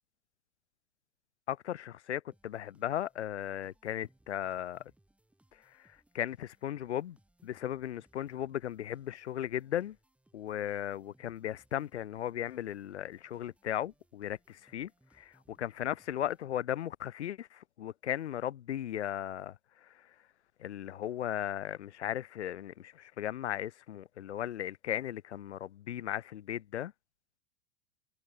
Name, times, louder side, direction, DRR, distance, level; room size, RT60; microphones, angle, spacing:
voice 1, 1.5-4.8 6.1-7.2 7.4-10.0 10.3-14.9 15.2-19.6 20.6-26.9, left 11 dB, 70° left, 0.5 m, -36 dB
sound 1, 2.3-16.9, right 1 dB, 5° right, 2.1 m, -70 dB
figure-of-eight pair, 85°, 35 cm